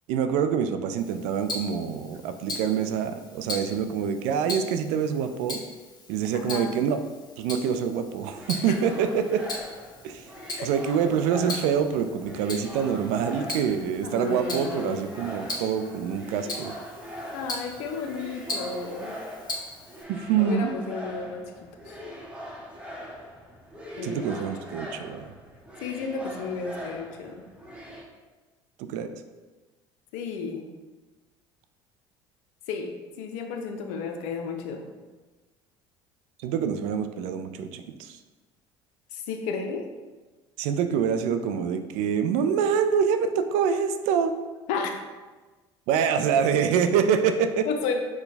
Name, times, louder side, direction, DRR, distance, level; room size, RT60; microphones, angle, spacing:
voice 1, 0.1-5.6 6.1-7.0 7.4-9.4 10.0-10.2 10.6-16.7 20.1-20.7 24.0-25.3 28.8-29.1 36.4-38.2 40.6-44.3 45.9-47.7, right 7 dB, 70° right, 9 dB, 0.4 m, -26 dB
Tick-tock, 1.0-20.0, left 2 dB, 35° left, 1.0 m, -39 dB
voice 2, 6.3-6.8 8.7-8.8 10.6-10.7 14.0-15.2 17.3-19.2 20.4-22.0 24.0-24.7 25.8-27.4 30.1-30.7 32.7-34.9 39.1-39.9 44.7-45.0 47.7-48.0, left 5 dB, 70° left, 5 dB, 0.5 m, -33 dB
sound 1, 8.2-28.0, equal, 10° right, 0.9 m, -41 dB
4.6 x 2.2 x 4.0 m, 1.3 s
hypercardioid pair, 70°, 13 cm